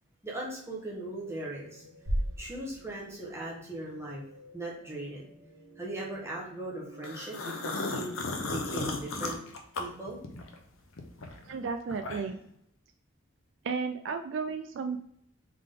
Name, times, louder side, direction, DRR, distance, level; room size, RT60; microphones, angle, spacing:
voice 1, 0.2-1.8 2.4-4.2 4.5-5.2 5.8-8.2 8.5-9.4 9.7-10.2, right 1 dB, 15° right, -4 dB, 1.2 m, -39 dB
sound 1, 1.1-8.7, right 1 dB, 35° right, 1.5 m, -56 dB
sound 2, 2.1-4.1, equal, 85° right, 1.3 m, -35 dB
sound 3, 7.0-10.6 11.0-12.5, left 3 dB, 85° left, 0.7 m, -35 dB
voice 2, 11.5-12.4 13.6-15.0, right 5 dB, 65° right, 7 dB, 0.3 m, -33 dB
3.7 x 3.6 x 3.7 m, 0.71 s
head